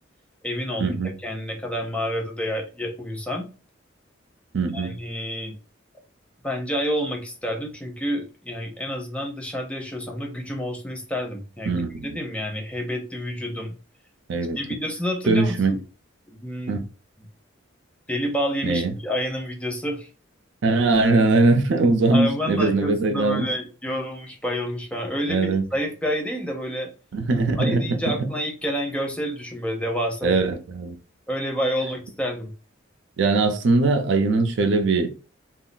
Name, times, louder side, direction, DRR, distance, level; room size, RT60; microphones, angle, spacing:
voice 1, 0.4-3.5 4.7-5.5 6.4-13.7 14.5-15.8 16.3-16.8 18.1-20.1 22.1-26.9 27.6-30.4 31.3-32.5, equal, 5° left, 0.5 m, -29 dB
voice 2, 4.5-5.0 11.7-12.2 14.3-14.6 15.3-15.7 16.7-16.8 18.6-18.9 20.6-23.5 25.3-25.6 27.1-27.8 30.2-30.9 33.2-35.1, right 3 dB, 65° right, 0.4 m, -21 dB
2.3 x 2.0 x 3.8 m
head